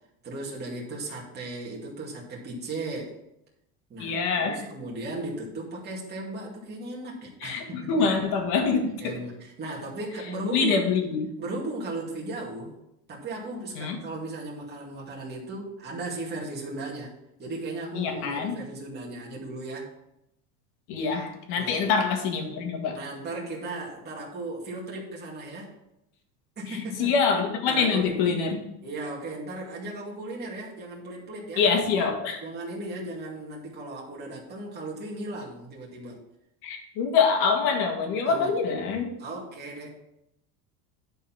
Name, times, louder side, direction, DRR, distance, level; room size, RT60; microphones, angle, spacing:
voice 1, 0.2-3.2 3.9-8.1 9.0-10.8 11.4-12.7 13.1-19.9 21.5-21.8 22.9-25.7 26.6-27.1 27.7-28.1 28.8-31.6 32.4-36.2 38.3-38.6 39.2-39.9, right 2 dB, 25° right, -4 dB, 2.3 m, -36 dB
voice 2, 4.0-4.6 7.4-9.2 10.5-11.3 13.8-14.0 17.9-18.6 20.9-23.0 26.7-28.6 31.6-32.4 36.6-39.1, left 5 dB, 60° left, 3 dB, 2.1 m, -25 dB
10.5 x 4.7 x 5.8 m, 0.85 s
supercardioid pair, 135°, 43 cm